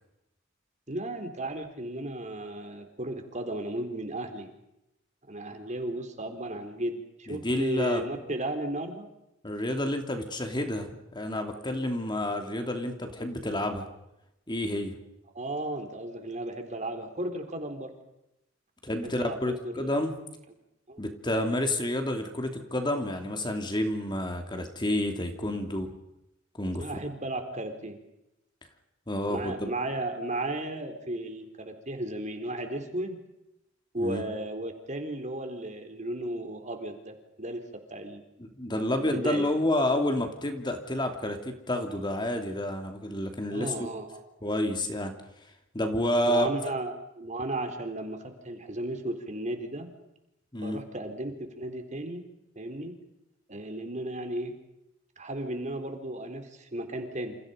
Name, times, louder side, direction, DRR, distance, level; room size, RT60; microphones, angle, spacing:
voice 1, 0.9-4.5 5.3-9.1 15.3-17.9 19.0-19.9 20.9-21.0 26.7-28.0 29.3-33.2 33.9-37.6 37.9-38.2 39.0-39.5 43.5-44.3 46.2-49.9 50.6-52.2 52.6-52.9 53.5-54.5 55.2-57.4, right 1 dB, 40° right, 6 dB, 4.1 m, -34 dB
voice 2, 7.3-8.0 9.4-13.8 14.5-14.9 18.8-20.1 21.0-25.9 26.6-27.0 29.1-29.7 34.0-34.2 38.4-43.9 44.4-45.1 45.7-46.5 50.5-50.8, left 1 dB, 25° left, 5 dB, 3.0 m, -29 dB
29.0 x 28.5 x 5.3 m, 0.87 s
head